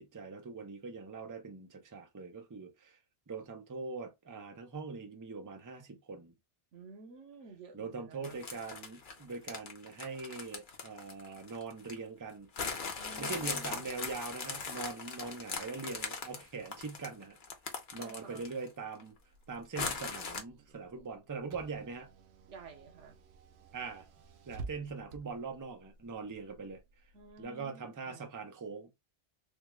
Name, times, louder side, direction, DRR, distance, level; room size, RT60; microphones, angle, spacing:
voice 1, 0.0-3.0 3.3-6.3 7.7-12.5 13.2-17.4 17.9-19.1 19.5-22.1 23.7-24.1 24.5-26.8 27.4-28.9, right 4 dB, 25° right, 0.5 m, -42 dB
voice 2, 6.7-8.4 13.0-13.9 17.9-18.5 22.5-23.2 27.1-28.3, right 4 dB, 90° right, 1.2 m, -52 dB
sound 1, 8.2-12.0 12.6-18.7 19.0-19.1 19.8-20.4, left 5 dB, 50° left, 0.9 m, -40 dB
Car / Engine, 19.1-27.4, right 4 dB, 70° right, 0.8 m, -52 dB
3.4 x 2.3 x 3.0 m
omnidirectional pair, 1.2 m